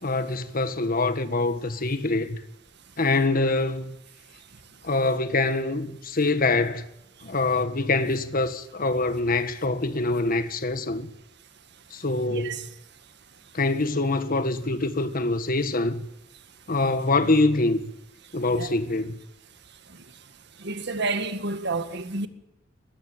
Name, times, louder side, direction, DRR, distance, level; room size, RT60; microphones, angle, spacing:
voice 1, 0.0-2.4 3.0-4.0 4.8-6.8 7.2-11.1 11.9-12.5 13.5-16.1 16.7-17.8 18.3-19.2, left 2 dB, 50° left, 1.5 m, -24 dB
voice 2, 12.3-12.6 18.5-18.7 20.6-22.3, right 3 dB, 60° right, 1.9 m, -29 dB
20.5 x 15.0 x 9.2 m
head